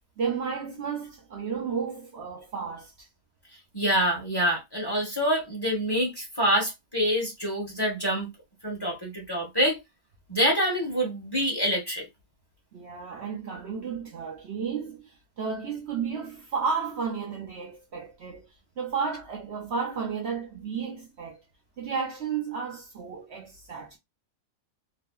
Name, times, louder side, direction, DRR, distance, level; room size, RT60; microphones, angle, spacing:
voice 1, 0.2-3.1 12.7-18.5 18.8-21.4 21.8-24.0, right 6 dB, 65° right, 0.7 m, -33 dB
voice 2, 3.7-8.3 8.6-9.8 10.3-12.0, equal, 20° left, 0.7 m, -26 dB
2.7 x 2.4 x 2.2 m
omnidirectional pair, 1.7 m